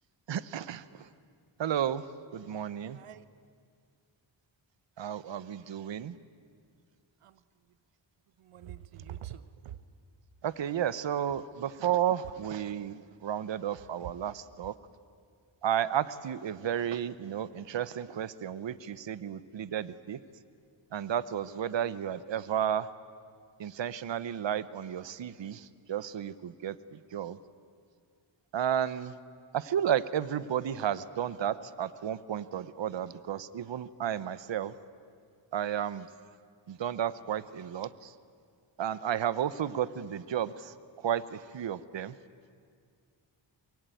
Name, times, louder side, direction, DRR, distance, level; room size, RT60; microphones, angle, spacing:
voice 1, 0.3-1.1 1.6-2.1 2.3-3.0 5.0-6.2 10.4-14.7 15.6-20.2 20.9-22.9 23.6-27.4 28.5-29.2 29.5-34.7 35.5-36.1 36.7-38.1 38.8-42.2, right 9 dB, 60° right, 16 dB, 0.9 m, -32 dB
voice 2, 2.9-3.3 7.2-7.4 8.4-9.8, right 11 dB, 90° right, 14 dB, 0.9 m, -45 dB
24.0 x 23.0 x 9.2 m, 2.2 s
cardioid pair, 65°, 50 cm